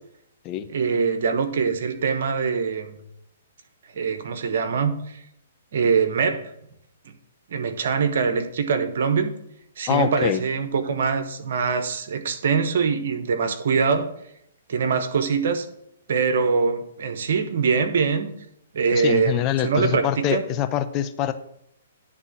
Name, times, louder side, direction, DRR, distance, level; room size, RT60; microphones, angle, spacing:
voice 1, 0.7-3.0 3.9-5.2 5.7-6.5 7.5-9.3 9.8-14.1 14.7-15.7 16.1-18.3 18.7-20.4, right 5 dB, 65° right, 8 dB, 1.1 m, -23 dB
voice 2, 9.9-10.4 18.9-21.3, left 11 dB, 30° left, 10 dB, 0.6 m, -24 dB
10.0 x 3.7 x 7.2 m, 0.76 s
hypercardioid pair, 130°, 0 cm